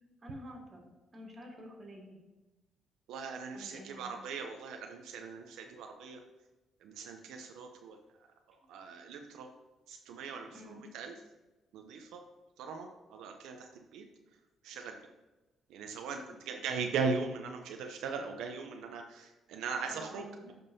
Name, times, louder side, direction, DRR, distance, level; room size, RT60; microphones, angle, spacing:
voice 1, 0.2-2.2 3.5-4.2 10.5-10.8 16.3-16.4 19.9-20.4, equal, 35° right, -1 dB, 2.2 m, -49 dB
voice 2, 3.1-6.2 6.8-8.0 8.7-9.5 9.9-11.1 11.7-12.2 12.6-14.0 14.6-15.0 15.7-20.5, right 5 dB, 90° right, 4 dB, 0.5 m, -39 dB
11.0 x 5.2 x 2.7 m, 1.1 s
cardioid pair, 90°, 0 cm